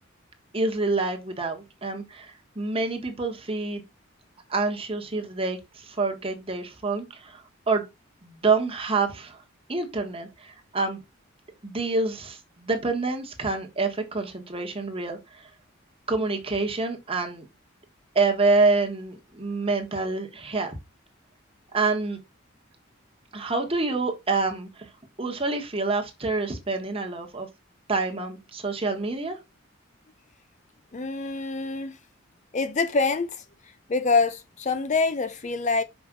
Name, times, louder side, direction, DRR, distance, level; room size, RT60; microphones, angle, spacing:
voice 1, 0.5-3.8 4.5-7.9 8.2-9.4 9.7-11.0 11.6-15.5 16.1-17.5 18.1-20.8 21.7-22.2 23.3-24.9 25.2-27.5 27.9-29.4, right 3 dB, 30° right, 1.4 m, -27 dB
voice 2, 30.9-32.0 32.5-33.4 33.9-35.8, left 4 dB, 35° left, 0.5 m, -25 dB
6.1 x 5.1 x 3.9 m
head